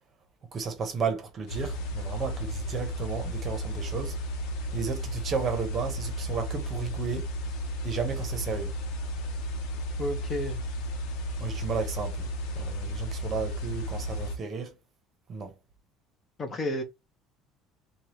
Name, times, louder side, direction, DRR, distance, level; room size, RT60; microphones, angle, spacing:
voice 1, 0.5-4.2 4.7-7.3 7.8-8.8 11.4-12.3 12.5-14.7 15.3-15.5, right 5 dB, 25° right, 1.0 m, -33 dB
sound 1, 1.5-14.4, equal, 65° left, 0.9 m, -33 dB
voice 2, 10.0-10.6 16.4-16.8, left 1 dB, 20° left, 0.9 m, -31 dB
4.7 x 2.3 x 2.9 m
cardioid pair, 180°, 0 cm